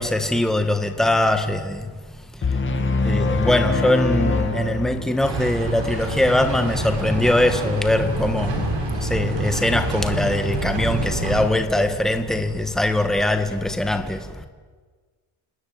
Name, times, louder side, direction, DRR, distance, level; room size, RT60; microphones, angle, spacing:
voice 1, 0.0-1.9 3.0-14.3, left 1 dB, ahead, 1.7 m, -22 dB
sound 1, 2.4-5.4, left 3 dB, 25° left, 2.3 m, -23 dB
sound 2, 5.2-11.4, right 2 dB, 60° right, 6.6 m, -27 dB
29.0 x 19.5 x 9.6 m
cardioid pair, 145°, 49 cm